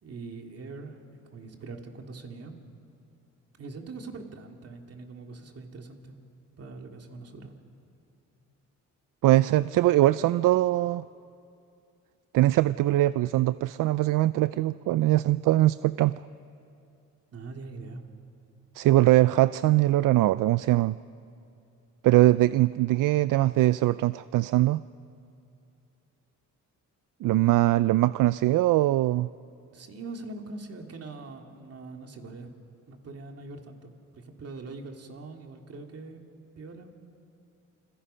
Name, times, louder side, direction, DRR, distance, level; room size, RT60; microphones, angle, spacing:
voice 1, 0.0-2.6 3.6-6.2 6.6-7.5 17.3-18.1 29.7-32.5 32.9-36.2 36.6-36.9, right 3 dB, 45° right, 3 dB, 2.6 m, -42 dB
voice 2, 9.2-11.0 12.3-16.2 18.7-21.0 22.0-24.8 27.2-29.3, right 16 dB, 70° right, 16 dB, 0.5 m, -22 dB
28.5 x 26.5 x 5.7 m, 2.6 s
cardioid pair, 120°, 33 cm